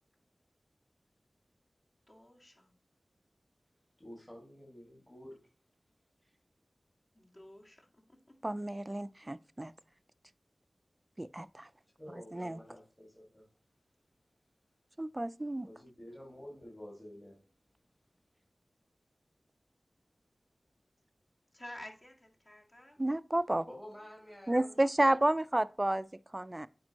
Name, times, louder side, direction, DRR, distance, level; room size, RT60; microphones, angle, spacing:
voice 1, 2.1-2.8 7.1-8.4 21.5-23.0, left 1 dB, 40° left, 1.9 m, -51 dB
voice 2, 4.0-5.5 12.0-13.5 15.6-17.4 23.7-25.1, equal, 15° left, 1.9 m, -50 dB
voice 3, 8.4-9.7 11.2-11.7 12.3-12.6 15.0-15.7 23.0-23.7 24.5-26.1 26.3-26.7, right 1 dB, 25° right, 0.3 m, -31 dB
8.8 x 5.2 x 2.9 m
wide cardioid pair, 55°, 0 cm